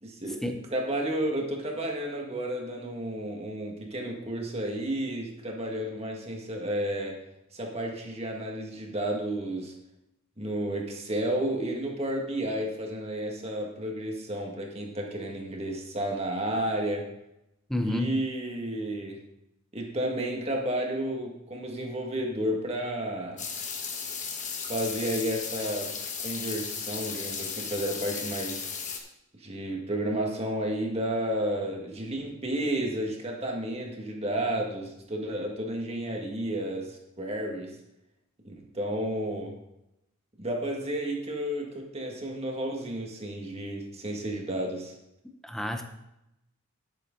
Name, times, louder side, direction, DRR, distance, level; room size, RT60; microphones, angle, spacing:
voice 1, 0.0-0.4 0.7-7.2 7.5-9.7 10.4-17.0 17.8-19.2 19.7-23.4 24.7-28.6 29.4-37.8 38.4-39.5 40.4-44.9, right 1 dB, 30° right, 1 dB, 1.8 m, -32 dB
voice 2, 17.7-18.2 45.4-45.8, left 1 dB, ahead, 5 dB, 0.8 m, -29 dB
sound 1, 23.4-29.0, left 6 dB, 35° left, 1.3 m, -35 dB
9.9 x 8.9 x 3.9 m, 0.86 s
head